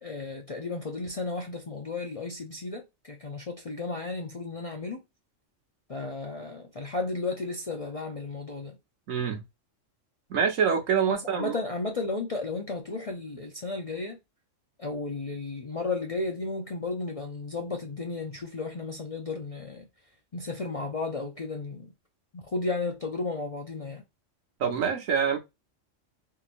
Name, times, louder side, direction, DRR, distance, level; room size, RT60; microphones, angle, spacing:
voice 1, 0.0-5.0 5.9-8.8 11.1-14.2 14.8-19.9 20.3-21.9 22.3-24.0, left 3 dB, 45° left, 0.4 m, -34 dB
voice 2, 9.1-9.4 10.3-11.6 24.6-25.4, right 7 dB, 85° right, 1.3 m, -26 dB
3.8 x 2.9 x 2.5 m
omnidirectional pair, 1.3 m